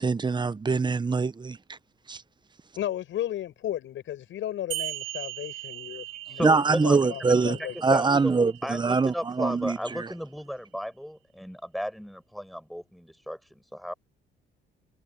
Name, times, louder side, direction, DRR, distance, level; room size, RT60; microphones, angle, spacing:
voice 1, 0.0-1.6 2.1-2.2 6.4-7.6 7.8-10.1, right 4 dB, 20° right, 0.9 m, -24 dB
voice 2, 2.8-8.0, left 12 dB, 75° left, 7.2 m, -34 dB
sound 1, 4.7-9.7, right 16 dB, 85° right, 2.3 m, -39 dB
voice 3, 6.1-7.0 7.4-13.9, equal, ahead, 5.8 m, -35 dB
cardioid pair, 90°, 20 cm